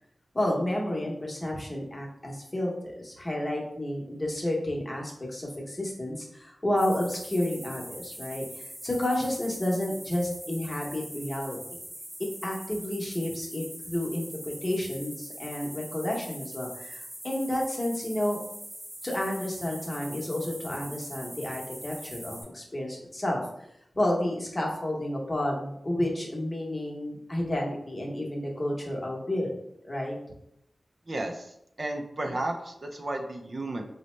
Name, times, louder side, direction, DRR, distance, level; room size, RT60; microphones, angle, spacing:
voice 1, 0.3-11.6 12.4-18.4 19.0-23.4 23.9-29.5 29.8-30.2, left 1 dB, 25° left, -2 dB, 0.8 m, -31 dB
sound 1, 6.8-22.4, right 1 dB, 20° right, 0.8 m, -42 dB
voice 2, 31.1-33.8, right 1 dB, 45° right, 3 dB, 0.4 m, -33 dB
3.9 x 2.1 x 3.1 m, 0.77 s
wide cardioid pair, 90°, 0 cm